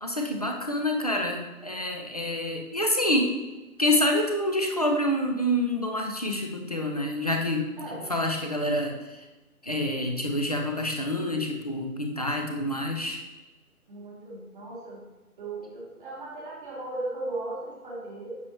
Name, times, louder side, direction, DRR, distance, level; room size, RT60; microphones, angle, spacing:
voice 1, 0.0-3.3 3.8-9.3 9.6-13.2, left 1 dB, 25° left, 2 dB, 0.6 m, -27 dB
voice 2, 7.8-8.1 13.9-15.0 15.4-18.4, right 2 dB, ahead, -34 dB, 0.9 m, -37 dB
9.7 x 7.8 x 3.0 m, 1.1 s
hypercardioid pair, 170°, 45 cm